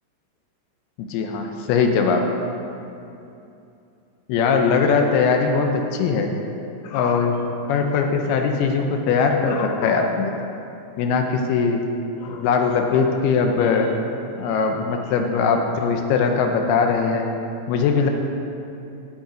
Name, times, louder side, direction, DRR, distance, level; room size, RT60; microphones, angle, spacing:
voice 1, 1.0-2.2 4.3-6.3 6.8-7.4 7.7-10.3 11.0-11.8 12.2-13.9 14.4-17.2 17.7-18.1, left 5 dB, 80° left, 4 dB, 2.4 m, -20 dB
12.0 x 5.7 x 5.0 m, 2.7 s
omnidirectional pair, 4.8 m